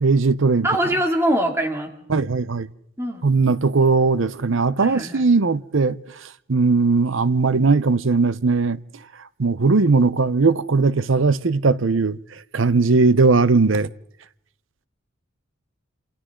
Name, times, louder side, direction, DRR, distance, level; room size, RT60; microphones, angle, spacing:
voice 1, 0.0-0.7 2.1-2.7 3.2-6.0 6.5-8.8 9.4-12.2 12.5-13.9, right 4 dB, 70° right, 0.8 m, -18 dB
voice 2, 0.6-1.9 3.0-3.2 4.8-5.2, right 1 dB, 15° right, 2.7 m, -22 dB
28.5 x 27.5 x 3.8 m
head